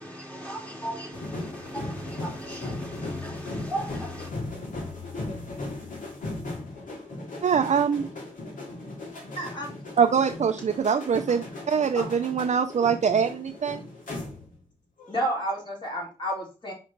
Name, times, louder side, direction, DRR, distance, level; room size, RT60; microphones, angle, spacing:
voice 1, 0.0-4.3, right 1 dB, 10° left, 2.1 m, -37 dB
sound 1, 1.1-14.7 15.0-15.3, left 2 dB, 85° left, 2.4 m, -37 dB
voice 2, 7.4-8.1 10.0-13.8, right 7 dB, 60° right, 0.5 m, -23 dB
voice 3, 9.4-9.7 11.9-12.2 15.1-16.7, right 1 dB, 35° left, 3.3 m, -31 dB
5.1 x 4.4 x 5.2 m
wide cardioid pair, 110°, 13 cm